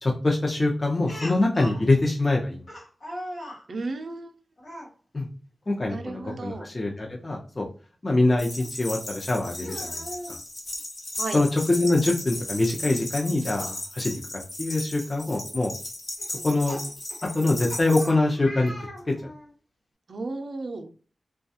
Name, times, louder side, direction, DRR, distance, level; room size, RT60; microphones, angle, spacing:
voice 1, 0.0-2.6 5.1-5.3 5.7-7.7 8.0-10.0 11.3-14.2 14.6-15.7 16.4-16.8 17.3-19.1, left 2 dB, 40° left, 0 dB, 0.5 m, -24 dB
Speech, 1.1-1.8 2.7-3.6 4.6-4.9 6.1-6.4 6.8-6.9 8.6-8.7 9.5-10.4 11.7-11.8 12.1-12.2 14.1-14.2 14.8-15.1 16.2-19.5, equal, 85° left, 1.2 m, -40 dB
voice 2, 3.7-4.3 5.9-6.7 11.2-11.4 20.1-20.9, right 3 dB, 70° right, 5 dB, 0.4 m, -34 dB
sound 1, 8.4-18.1, left 1 dB, 55° left, 1.0 m, -36 dB
2.3 x 2.2 x 2.7 m, 0.39 s
cardioid pair, 60°, 0 cm